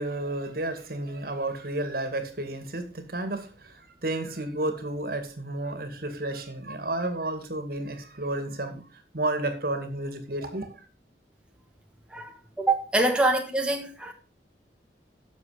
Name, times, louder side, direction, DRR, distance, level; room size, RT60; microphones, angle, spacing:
voice 1, 0.0-10.7, right 2 dB, 55° right, 2.1 m, -32 dB
voice 2, 12.1-14.1, right 2 dB, 5° right, 1.3 m, -25 dB
12.0 x 7.1 x 5.1 m
head